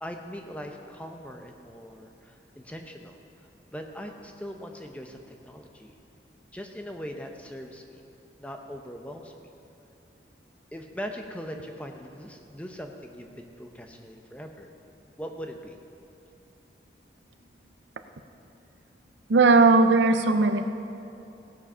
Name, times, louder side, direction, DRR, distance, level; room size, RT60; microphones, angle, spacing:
voice 1, 0.0-5.9 6.5-8.0 8.4-9.5 10.7-14.7 15.2-15.8, equal, 10° left, 3 dB, 0.7 m, -40 dB
voice 2, 19.3-20.7, right 3 dB, 80° right, 8 dB, 0.6 m, -18 dB
16.5 x 7.5 x 5.5 m, 2.8 s
head